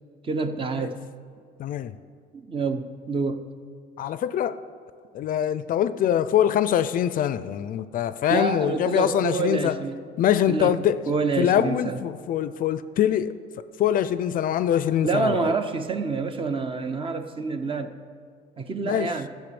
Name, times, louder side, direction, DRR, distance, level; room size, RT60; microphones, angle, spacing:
voice 1, 0.2-1.0 2.3-3.4 8.3-10.0 10.5-12.0 15.0-18.0 18.6-19.3, right 4 dB, 30° right, 8 dB, 0.8 m, -27 dB
voice 2, 1.6-2.0 4.0-4.6 5.1-9.8 10.2-11.0 11.4-15.6 18.8-19.2, left 10 dB, 55° left, 14 dB, 0.5 m, -24 dB
12.0 x 7.6 x 6.9 m, 2.2 s
cardioid pair, 110°, 17 cm